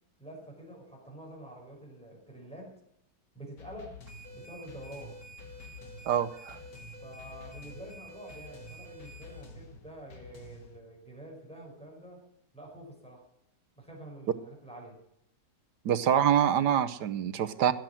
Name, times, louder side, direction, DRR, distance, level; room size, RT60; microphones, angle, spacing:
voice 1, 0.2-2.8 3.3-4.0 4.3-5.2 7.0-12.2 12.5-13.3 13.8-15.0, right 1 dB, 5° left, -2 dB, 5.5 m, -47 dB
sound 1, 3.6-10.8, left 3 dB, 75° left, 2.4 m, -50 dB
sound 2, 4.1-9.4, right 1 dB, 40° right, 3.8 m, -50 dB
voice 2, 6.1-6.6 15.8-17.7, right 9 dB, 70° right, 12 dB, 1.4 m, -25 dB
17.0 x 7.8 x 7.4 m, 0.77 s
omnidirectional pair, 1.9 m